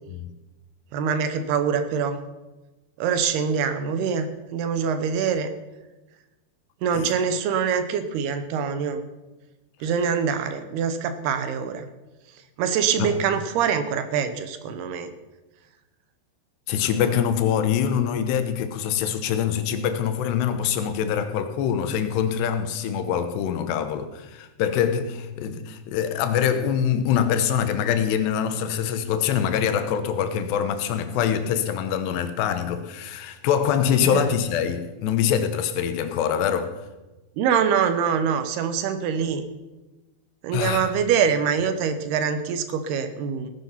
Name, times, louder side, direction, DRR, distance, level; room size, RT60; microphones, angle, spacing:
voice 1, 0.9-2.2 3.0-4.3 4.5-5.5 6.8-9.0 9.8-11.9 12.6-15.1 34.0-34.2 37.4-39.4 40.4-43.5, right 7 dB, 75° right, 2.9 m, -24 dB
voice 2, 16.7-36.8 40.5-40.9, left 8 dB, 80° left, 3.1 m, -24 dB
17.5 x 10.0 x 5.7 m
omnidirectional pair, 4.8 m